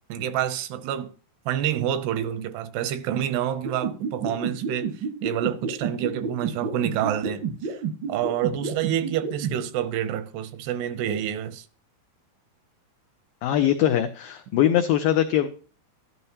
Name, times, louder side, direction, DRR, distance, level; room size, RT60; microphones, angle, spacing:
voice 1, 0.1-1.1 1.5-4.9 5.2-7.8 8.1-11.7, right 10 dB, 85° right, 2.8 m, -28 dB
sound 1, 3.6-9.5, right 6 dB, 65° right, 1.2 m, -28 dB
voice 2, 13.4-15.5, left 11 dB, 85° left, 2.0 m, -21 dB
12.0 x 12.0 x 2.8 m
omnidirectional pair, 4.7 m